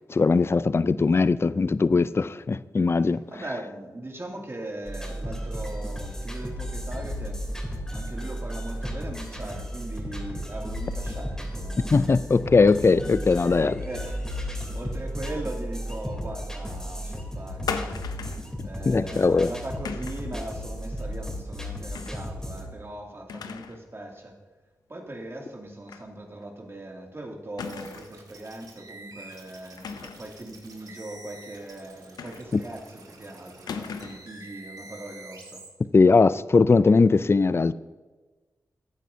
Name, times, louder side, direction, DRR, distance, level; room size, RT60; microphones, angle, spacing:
voice 1, 0.0-3.2 11.9-13.7 18.9-19.5 35.9-37.7, left 4 dB, 40° left, 16 dB, 0.4 m, -20 dB
voice 2, 3.3-7.4 7.9-12.0 13.3-14.2 14.7-17.7 18.6-24.3 24.9-35.6, right 1 dB, 40° right, 0 dB, 2.5 m, -39 dB
sound 1, 4.9-22.7, equal, 10° left, 3.2 m, -34 dB
sound 2, 17.7-18.5 19.9-20.3 21.9-22.3 22.6-22.7 23.3-23.8 24.2-24.3 25.9-26.1 26.4-26.5 27.6-28.2 29.8-30.3 32.2-32.7 33.7-34.3, left 6 dB, 90° left, 0.6 m, -36 dB
sound 3, 27.6-35.7, right 2 dB, 75° right, 1.7 m, -48 dB
14.0 x 9.1 x 2.7 m, 1.3 s
cardioid pair, 40°, 7 cm